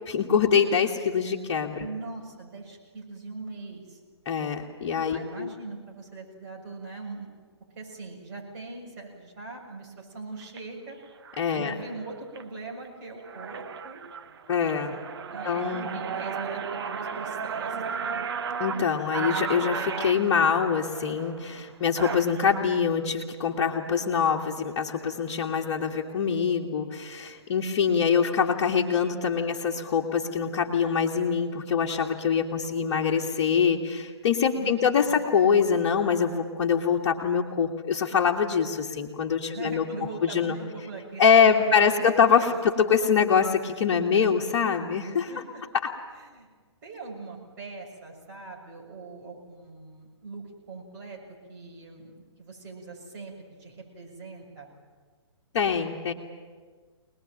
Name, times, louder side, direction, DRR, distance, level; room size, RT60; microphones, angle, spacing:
voice 1, 0.0-1.9 4.3-5.5 11.4-11.7 14.5-15.0 15.4-15.9 18.6-39.8 40.2-40.6 41.2-45.3 55.5-56.1, left 6 dB, 40° left, -2 dB, 1.9 m, -24 dB
voice 2, 1.8-4.0 5.1-7.3 7.8-11.0 11.5-14.0 15.3-18.3 34.5-35.2 39.4-42.6 44.0-44.5 45.3-45.6 46.2-46.5 46.8-51.2 51.5-54.7, right 3 dB, 40° right, -1 dB, 7.1 m, -41 dB
sound 1, 10.4-10.6 11.2-11.5 12.0-12.4 12.8-12.9 13.2-22.6, right 6 dB, 60° right, 1.1 m, -34 dB
24.0 x 20.0 x 9.0 m, 1.5 s
figure-of-eight pair, 125°, 15 cm